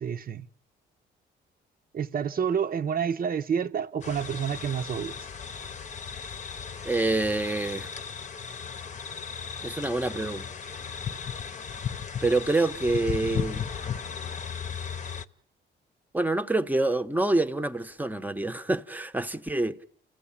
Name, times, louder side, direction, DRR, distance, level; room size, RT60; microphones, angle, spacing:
voice 1, 0.0-0.5 1.9-5.1, right 7 dB, 45° right, 0.9 m, -29 dB
sound 1, 4.0-15.3, left 7 dB, 35° left, 0.9 m, -36 dB
voice 2, 6.8-7.9 9.6-10.5 12.2-13.7 16.1-19.8, right 2 dB, 10° right, 0.9 m, -26 dB
30.0 x 15.5 x 8.7 m
cardioid pair, 90°, 20 cm